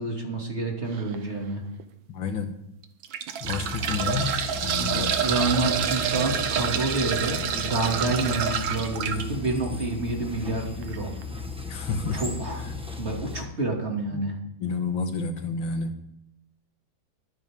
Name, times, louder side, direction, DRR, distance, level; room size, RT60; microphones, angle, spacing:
voice 1, 0.0-1.6 4.8-11.1 12.1-12.7 13.0-14.3, right 2 dB, 35° right, 0 dB, 2.6 m, -28 dB
sound 1, 0.9-1.2 1.8-1.9 2.8-9.2 10.8-11.0 11.2-11.3, right 8 dB, 80° right, 1.7 m, -28 dB
voice 2, 2.1-2.5 3.4-4.3 4.6-5.1 11.7-12.2 14.1-14.2 14.6-15.9, left 5 dB, 75° left, 6 dB, 2.1 m, -30 dB
sound 2, 3.4-13.5, left 3 dB, 5° right, 0.8 m, -36 dB
22.5 x 9.0 x 3.6 m, 0.76 s
omnidirectional pair, 2.2 m